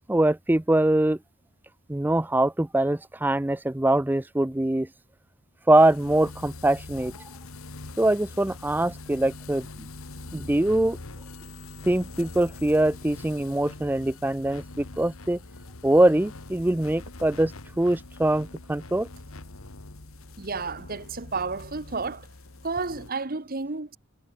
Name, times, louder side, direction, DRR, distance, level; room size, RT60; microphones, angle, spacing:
voice 1, 0.1-1.2 1.9-4.9 5.7-7.1 8.0-9.9 10.3-11.0 11.9-15.4 15.8-19.1, right 1 dB, 10° right, 0.4 m, -23 dB
sound 1, 5.7-23.1, left 2 dB, 75° left, 1.7 m, -43 dB
voice 2, 20.4-22.3 22.6-24.0, right 4 dB, 40° right, 1.2 m, -31 dB
head